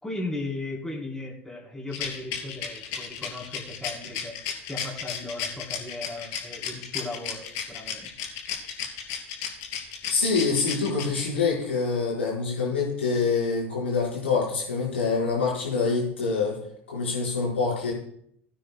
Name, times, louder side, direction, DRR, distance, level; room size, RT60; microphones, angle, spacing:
voice 1, 0.0-4.3 4.7-8.1, left 2 dB, 5° left, -3 dB, 3.9 m, -36 dB
Rattle, 1.9-11.5, left 8 dB, 60° left, 3.0 m, -33 dB
voice 2, 10.1-16.6 16.9-17.9, left 4 dB, 85° left, -4 dB, 4.8 m, -25 dB
20.5 x 9.2 x 2.3 m, 0.69 s
hypercardioid pair, 75°, 6 cm